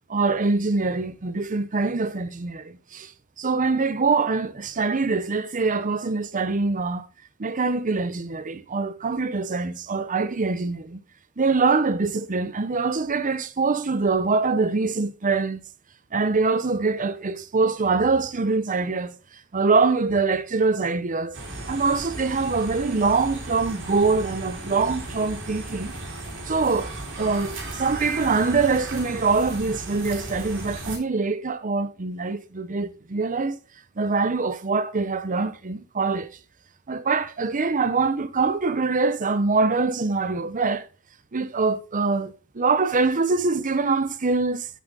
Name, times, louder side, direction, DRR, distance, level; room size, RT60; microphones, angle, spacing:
voice 1, 0.1-3.1 3.4-7.1 7.4-11.0 11.4-15.6 16.1-19.1 19.5-21.4 21.7-25.9 26.5-26.9 27.2-33.6 34.0-36.3 36.9-40.9 41.3-44.7, right 4 dB, 35° right, 0.7 m, -24 dB
sound 1, 21.3-31.0, right 2 dB, 60° right, 3.3 m, -35 dB
8.5 x 7.4 x 3.8 m
head